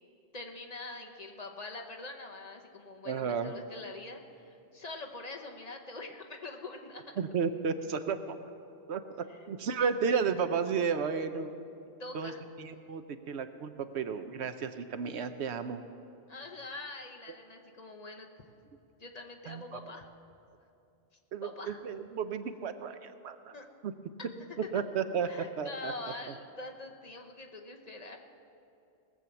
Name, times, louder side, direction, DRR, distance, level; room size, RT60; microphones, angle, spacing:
voice 1, 0.3-7.0 9.3-9.6 12.0-12.4 16.3-18.3 19.0-20.1 21.4-21.8 23.5-23.7 25.2-28.2, left 2 dB, 40° left, 2 dB, 1.0 m, -44 dB
voice 2, 3.1-3.5 7.2-8.4 8.9-11.5 12.1-12.3 12.6-15.8 19.5-19.6 21.3-23.4 23.8-23.9 24.7-25.3 25.6-25.9, right 6 dB, 75° right, 10 dB, 1.0 m, -33 dB
18.5 x 7.4 x 6.9 m, 2.6 s
omnidirectional pair, 1.1 m